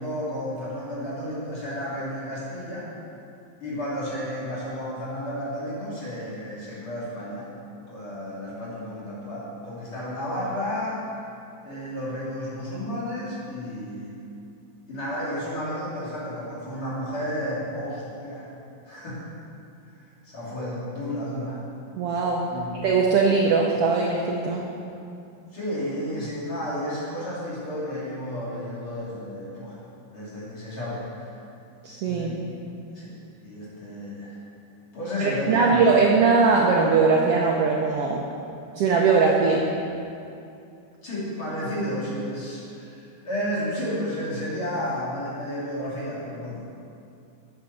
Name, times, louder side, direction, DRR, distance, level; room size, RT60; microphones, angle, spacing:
voice 1, 0.0-2.9 3.6-7.5 7.9-11.1 11.6-14.1 14.9-18.5 18.8-19.2 20.0-21.6 22.5-22.9 25.5-29.8 30.1-31.1 32.1-32.5 32.9-33.1 33.4-34.4 34.9-36.0 41.0-46.6, equal, 40° left, -9 dB, 3.7 m, -32 dB
voice 2, 21.9-22.5 22.8-24.6 31.8-32.4 35.2-38.2 38.8-39.6, right 4 dB, 80° right, -1 dB, 1.3 m, -20 dB
9.4 x 7.2 x 6.8 m, 2.6 s
omnidirectional pair, 3.6 m